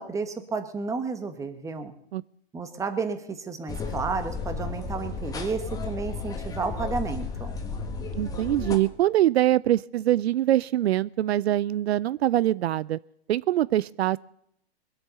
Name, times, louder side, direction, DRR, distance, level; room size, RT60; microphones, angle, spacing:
voice 1, 0.0-1.9 2.5-7.5, right 4 dB, 10° right, 9 dB, 1.2 m, -32 dB
sound 1, 3.7-8.8, left 4 dB, 10° left, 1.6 m, -33 dB
voice 2, 8.1-13.0 13.3-14.2, right 13 dB, 70° right, 21 dB, 0.5 m, -23 dB
22.0 x 8.2 x 6.9 m, 0.72 s
hypercardioid pair, 140°, 33 cm